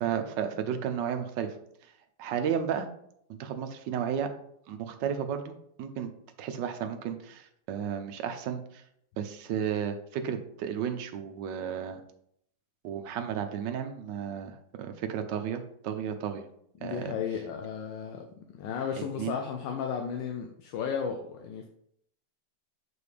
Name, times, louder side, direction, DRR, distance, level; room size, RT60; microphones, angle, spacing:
voice 1, 0.0-1.5 2.2-2.9 3.4-4.3 4.7-5.5 5.8-6.1 6.4-8.8 9.2-12.0 12.8-16.4 16.8-17.1 19.0-19.4, right 8 dB, 80° right, 8 dB, 1.4 m, -33 dB
voice 2, 16.8-18.3 18.5-21.7, left 7 dB, 85° left, 3 dB, 1.4 m, -34 dB
6.9 x 4.7 x 3.3 m, 0.71 s
omnidirectional pair, 1.9 m